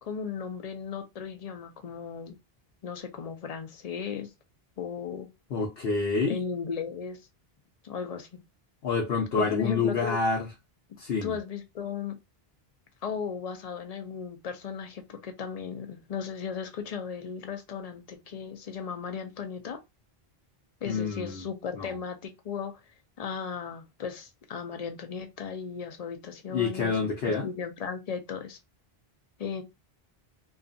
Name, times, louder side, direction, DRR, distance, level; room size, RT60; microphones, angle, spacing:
voice 1, 0.0-2.4 2.8-4.3 4.8-5.3 6.3-7.2 7.8-8.4 9.4-10.2 11.2-12.2 13.0-19.8 20.8-22.8 23.2-28.6 29.4-29.6, left 6 dB, 50° left, 0.5 m, -36 dB
voice 2, 5.5-6.4 8.8-10.5 11.0-11.4 20.9-21.4 21.7-21.9 26.5-27.5, left 4 dB, 75° left, 0.9 m, -27 dB
2.6 x 2.4 x 2.5 m
omnidirectional pair, 1.0 m